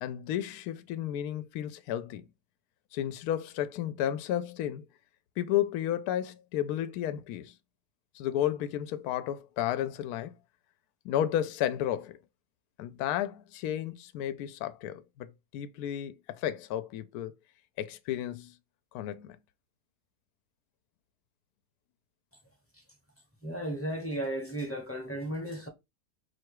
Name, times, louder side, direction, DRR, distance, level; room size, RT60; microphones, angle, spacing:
voice 1, 0.0-2.2 2.9-4.8 5.4-7.5 8.1-10.3 11.0-12.2 12.8-15.3 15.5-17.3 17.8-18.5 18.9-19.4, left 11 dB, 75° left, 1.1 m, -32 dB
voice 2, 23.4-25.7, right 1 dB, 10° left, 0.7 m, -34 dB
4.4 x 2.3 x 4.7 m
omnidirectional pair, 1.7 m